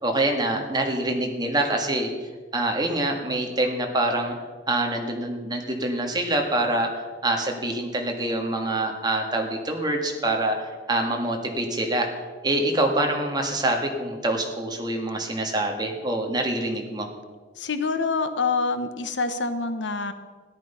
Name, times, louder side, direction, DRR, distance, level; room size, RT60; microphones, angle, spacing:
voice 1, 0.0-2.1 2.5-4.3 4.7-6.9 7.2-12.1 12.4-17.1, right 1 dB, 25° right, 2 dB, 1.8 m, -25 dB
voice 2, 17.6-20.1, left 4 dB, 85° left, 10 dB, 1.1 m, -26 dB
14.0 x 11.0 x 5.7 m, 1.4 s
head